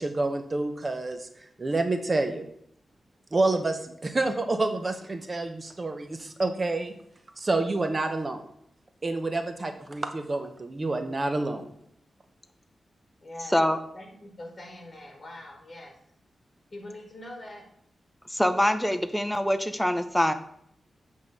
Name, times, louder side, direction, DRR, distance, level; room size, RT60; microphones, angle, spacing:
voice 1, 0.0-2.5 3.3-6.9 7.4-8.4 9.0-11.6, right 2 dB, 35° right, 7 dB, 0.7 m, -28 dB
voice 2, 13.2-16.0 16.7-17.7, left 1 dB, 30° left, 2 dB, 2.3 m, -43 dB
voice 3, 18.3-20.3, left 1 dB, 5° left, 8 dB, 0.7 m, -24 dB
7.9 x 3.7 x 6.4 m, 0.69 s
wide cardioid pair, 100°, 0 cm